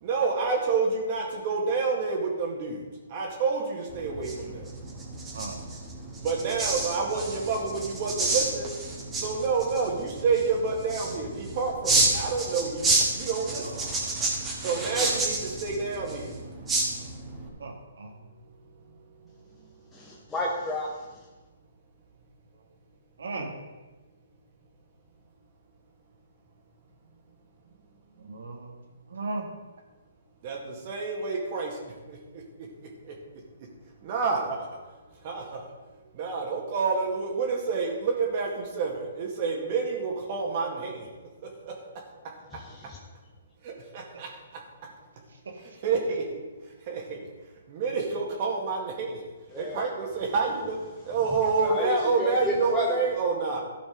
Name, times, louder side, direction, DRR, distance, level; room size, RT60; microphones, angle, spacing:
voice 1, 0.0-2.8 3.1-4.7 6.2-8.7 9.2-13.8 14.6-16.3 30.4-31.8 32.1-32.2 34.0-34.7 35.2-35.7 36.1-41.1 41.7-41.8 43.6-44.3 45.8-46.2 46.9-47.3 47.7-49.2 49.5-50.8 51.0-53.6, right 4 dB, 40° right, 0 dB, 2.1 m, -28 dB
sound 1, 3.9-17.5, right 2 dB, 10° right, 2.0 m, -30 dB
voice 2, 13.6-14.0 14.6-14.9 17.6-18.1 23.2-23.5 28.2-28.8 29.1-29.5, right 3 dB, 75° right, 2 dB, 1.7 m, -37 dB
voice 3, 19.9-20.9 42.5-43.0 49.5-49.8 51.6-53.0, left 1 dB, 10° left, -3 dB, 1.1 m, -31 dB
13.0 x 5.2 x 5.2 m, 1.2 s
hypercardioid pair, 140°, 0 cm